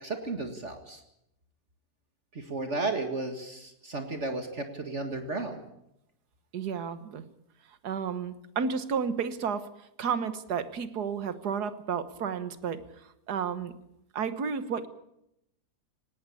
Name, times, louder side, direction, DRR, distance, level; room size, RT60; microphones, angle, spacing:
voice 1, 0.0-1.0 2.3-5.6, right 3 dB, 45° right, 6 dB, 2.1 m, -34 dB
voice 2, 6.5-7.2 7.8-9.7 10.0-13.7 14.1-14.9, right 6 dB, 75° right, 12 dB, 1.8 m, -32 dB
18.5 x 18.5 x 8.4 m, 0.81 s
omnidirectional pair, 1.7 m